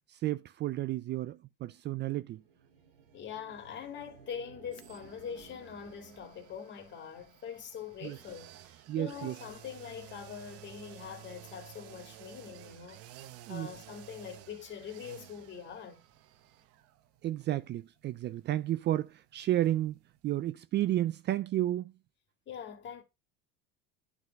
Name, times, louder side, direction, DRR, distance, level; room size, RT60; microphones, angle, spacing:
voice 1, 0.2-2.4 8.0-8.2 8.9-9.4 13.5-13.7 17.2-20.0 20.2-21.9, right 13 dB, 35° right, 0.4 m, -32 dB
sound 1, 2.1-6.7, right 6 dB, 90° right, 2.8 m, -57 dB
voice 2, 3.1-13.0 13.5-16.0 22.5-23.0, left 7 dB, 40° left, 2.2 m, -43 dB
sound 2, 4.7-20.5 20.8-20.9, right 13 dB, 55° right, 0.9 m, -54 dB
9.8 x 4.1 x 5.2 m
supercardioid pair, 120°, 29 cm